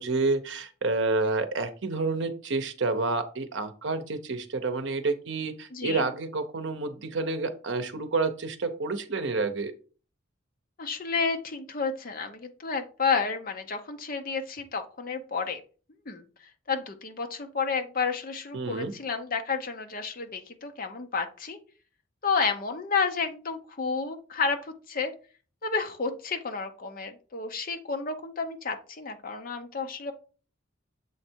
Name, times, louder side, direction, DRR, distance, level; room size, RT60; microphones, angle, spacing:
voice 1, 0.0-9.7 18.5-18.9, right 3 dB, 60° right, 9 dB, 0.8 m, -29 dB
voice 2, 5.7-6.1 10.8-15.6 16.1-16.2 16.7-21.6 22.2-25.1 25.6-30.1, left 5 dB, 45° left, 7 dB, 0.7 m, -31 dB
7.2 x 3.3 x 4.5 m, 0.38 s
head